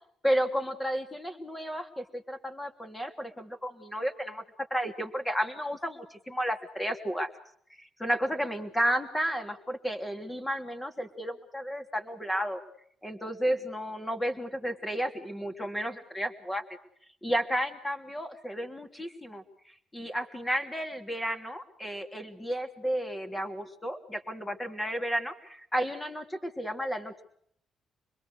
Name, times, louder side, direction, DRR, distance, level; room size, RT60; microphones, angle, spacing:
voice 1, 0.2-4.4 4.7-7.3 8.0-12.6 13.0-16.6 17.2-27.2, equal, 10° left, 5 dB, 3.3 m, -32 dB
26.0 x 21.5 x 6.5 m, 0.66 s
cardioid pair, 90°, 0 cm